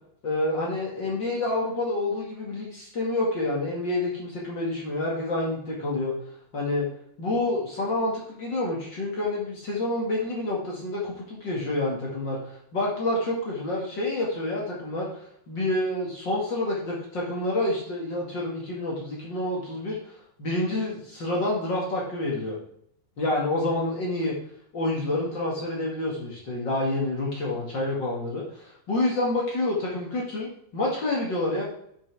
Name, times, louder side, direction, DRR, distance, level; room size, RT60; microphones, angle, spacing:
voice 1, 0.2-6.1 6.5-6.9 7.2-22.6 23.2-24.3 24.7-31.6, left 2 dB, 45° left, -3 dB, 1.4 m, -28 dB
8.6 x 5.6 x 4.7 m, 0.70 s
omnidirectional pair, 4.8 m